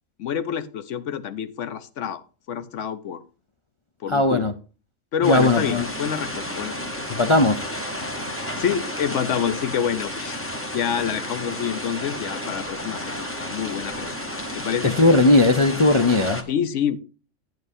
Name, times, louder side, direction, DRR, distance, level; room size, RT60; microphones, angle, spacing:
voice 1, 0.2-2.2 2.5-3.2 4.0-4.5 5.1-6.8 8.6-10.4 10.7-14.2 14.5-15.0 16.5-17.0, left 8 dB, 70° left, 12 dB, 1.1 m, -27 dB
voice 2, 4.1-4.5 5.2-5.9 7.1-7.6 14.8-16.4, left 2 dB, 45° left, 6 dB, 0.4 m, -18 dB
sound 1, 5.2-16.4, left 1 dB, 10° left, 0.9 m, -32 dB
10.5 x 8.0 x 2.7 m, 0.35 s
omnidirectional pair, 1.3 m